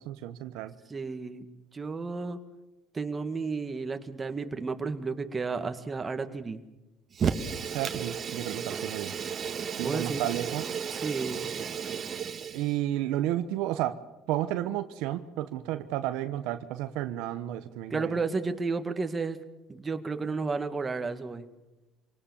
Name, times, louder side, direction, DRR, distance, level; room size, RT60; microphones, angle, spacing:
voice 1, 0.0-0.7 7.7-9.1 9.8-10.8 12.5-14.0 14.3-18.1, right 13 dB, 80° right, 10 dB, 1.1 m, -32 dB
voice 2, 0.9-1.5 1.7-2.4 2.9-6.6 9.8-10.2 10.9-11.4 17.9-19.4 19.7-21.5, right 4 dB, 25° right, 7 dB, 2.0 m, -32 dB
Fire, 7.1-12.8, right 7 dB, 40° right, 1.8 m, -33 dB
26.0 x 18.5 x 7.1 m, 0.97 s
supercardioid pair, 100°, 0 cm